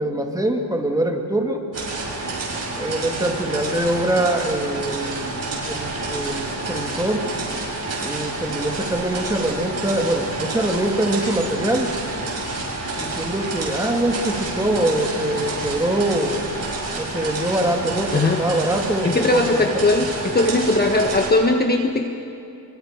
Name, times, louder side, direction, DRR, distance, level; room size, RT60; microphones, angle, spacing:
voice 1, 0.0-1.6 2.8-7.3 8.0-12.0 13.0-16.4 17.0-19.8, right 1 dB, 10° right, 2 dB, 2.2 m, -23 dB
sound 1, 1.7-21.3, right 2 dB, 35° right, 6.6 m, -29 dB
voice 2, 19.0-22.0, left 2 dB, 25° left, 3 dB, 1.2 m, -19 dB
26.0 x 23.5 x 5.1 m, 2.7 s
cardioid pair, 115°, 42 cm